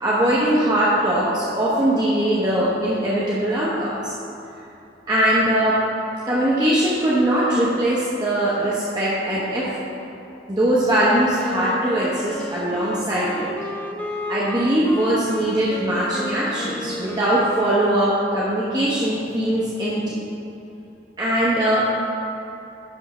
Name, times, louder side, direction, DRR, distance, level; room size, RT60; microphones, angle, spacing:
voice 1, 0.0-4.1 5.1-5.8 6.2-9.7 10.5-13.5 14.3-20.2 21.2-21.9, right 1 dB, 25° right, -8 dB, 1.0 m, -21 dB
Wind instrument woodwind instrument, 10.9-18.7, left 1 dB, 10° left, 0.4 m, -33 dB
10.5 x 3.6 x 5.5 m, 2.8 s
head